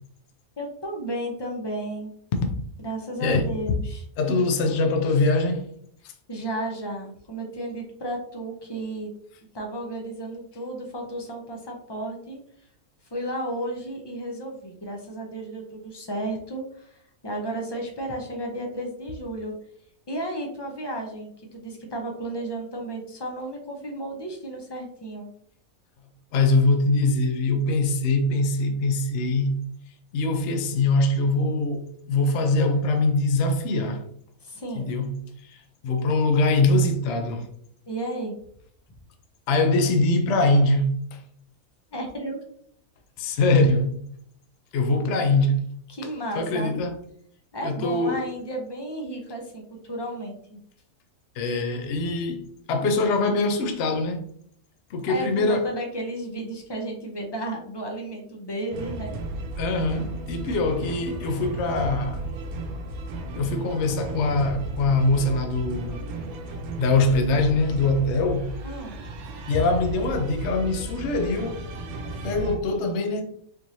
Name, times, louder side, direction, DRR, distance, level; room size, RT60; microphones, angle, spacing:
voice 1, 0.6-2.2 2.8-4.0 6.3-9.1 9.5-12.4 13.1-19.5 20.1-25.3 34.4-34.9 37.9-38.4 41.9-42.4 45.9-46.8 47.5-50.6 55.0-59.1 68.6-69.0, right 1 dB, 30° left, 0.4 m, -33 dB
voice 2, 4.2-5.7 26.3-29.6 30.1-34.0 34.7-35.1 35.4-35.6 35.8-37.5 39.5-41.2 43.2-43.9 44.7-45.6 46.3-47.0 47.6-48.2 51.4-54.2 54.9-55.8 59.6-62.2 63.3-66.0 66.7-68.5 69.5-71.6 72.2-73.2, left 2 dB, 60° left, 0.8 m, -23 dB
sound 1, 58.7-72.6, right 1 dB, 85° right, 1.1 m, -34 dB
4.4 x 3.0 x 2.7 m
omnidirectional pair, 1.5 m